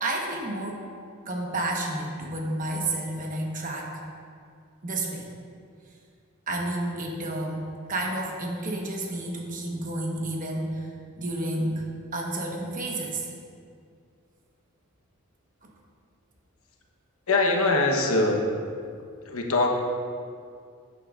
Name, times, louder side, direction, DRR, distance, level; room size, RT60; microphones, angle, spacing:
voice 1, 0.0-0.9 1.2-4.0 4.8-5.3 6.5-10.9 11.2-13.3, right 1 dB, 35° right, -1 dB, 1.1 m, -30 dB
voice 2, 17.3-18.4 19.2-19.7, left 2 dB, 75° left, 1 dB, 1.0 m, -22 dB
11.5 x 8.5 x 2.4 m, 2.3 s
head